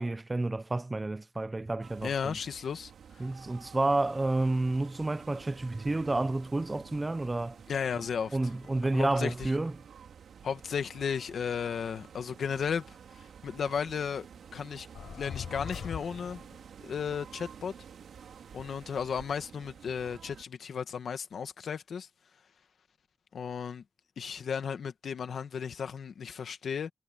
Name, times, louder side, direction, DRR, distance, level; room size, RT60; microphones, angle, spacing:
voice 1, 0.0-2.4 3.2-7.6 7.9-8.0 8.3-9.7, right 2 dB, 20° right, 0.5 m, -30 dB
sound 1, 1.8-20.4, right 7 dB, 85° right, 3.2 m, -51 dB
voice 2, 2.0-2.9 7.7-8.4 8.9-9.5 10.4-12.8 13.1-14.3 14.5-14.9 15.1-16.4 16.8-17.7 18.5-22.1 23.3-23.8 24.2-26.9, left 7 dB, 70° left, 1.8 m, -34 dB
sound 2, 14.9-16.6, left 7 dB, 90° left, 5.0 m, -41 dB
wide cardioid pair, 155°, 0 cm